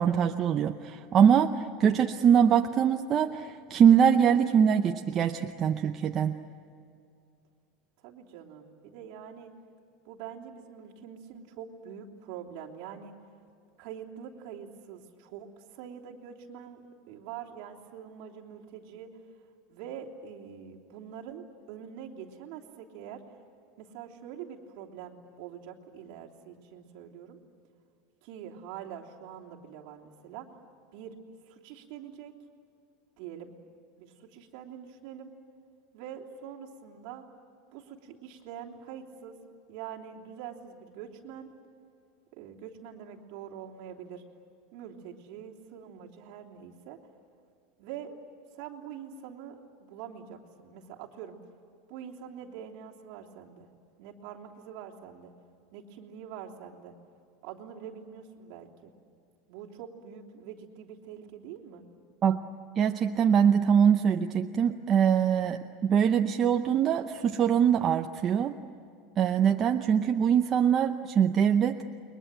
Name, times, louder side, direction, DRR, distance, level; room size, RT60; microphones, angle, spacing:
voice 1, 0.0-6.4 62.2-62.4 62.8-68.5 69.2-71.8, right 8 dB, 25° right, 4 dB, 0.7 m, -23 dB
voice 2, 8.0-9.5 10.0-13.2 13.8-19.1 19.7-23.2 23.8-27.4 28.2-30.5 30.9-31.2 31.4-32.3 33.2-33.5 34.0-35.3 35.9-37.3 37.7-39.4 39.7-41.5 42.3-44.2 44.7-47.0 47.8-48.2 48.5-51.4 51.9-53.7 54.0-55.3 55.7-56.9 57.4-58.9 59.5-61.8, right 8 dB, 50° right, -1 dB, 3.2 m, -44 dB
29.5 x 22.5 x 9.0 m, 2.5 s
supercardioid pair, 170°, 0 cm